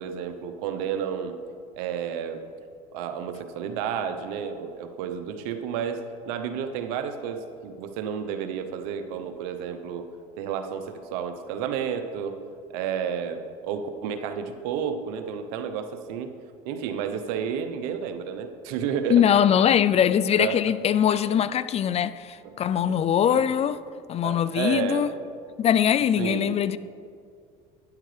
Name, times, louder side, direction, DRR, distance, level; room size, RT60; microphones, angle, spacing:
voice 1, 0.0-1.4 1.7-2.4 2.9-10.1 10.3-12.3 12.7-16.3 16.6-19.2 20.4-20.7 22.4-22.6 22.8-22.9 23.3-23.4 24.2-25.2 26.2-26.6, right 7 dB, 80° right, 0.9 m, -31 dB
voice 2, 19.1-23.8 24.1-25.1 25.6-26.8, left 9 dB, 35° left, 0.3 m, -22 dB
12.0 x 10.5 x 3.3 m
supercardioid pair, 100°, 19 cm